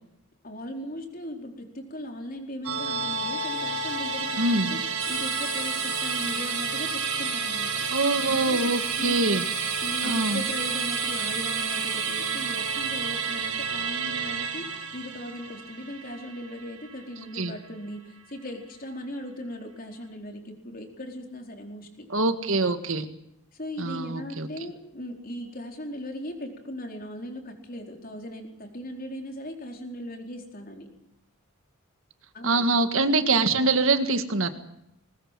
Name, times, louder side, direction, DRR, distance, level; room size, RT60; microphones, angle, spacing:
voice 1, 0.4-4.8 5.1-7.9 8.3-8.6 9.0-9.2 9.8-14.7 14.9-22.1 23.5-30.9 32.3-32.6, left 1 dB, 40° left, 3 dB, 4.4 m, -38 dB
Musical instrument, 2.6-17.3 17.6-17.7, right 6 dB, 90° right, 4.2 m, -30 dB
voice 2, 4.4-4.7 7.9-9.5 10.0-10.4 17.3-17.6 22.1-23.1 23.8-24.5 32.4-34.5, right 3 dB, 65° right, 9 dB, 1.8 m, -24 dB
sound 1, 5.0-13.9, right 1 dB, ahead, 5.9 m, -36 dB
21.0 x 20.5 x 7.6 m, 0.84 s
head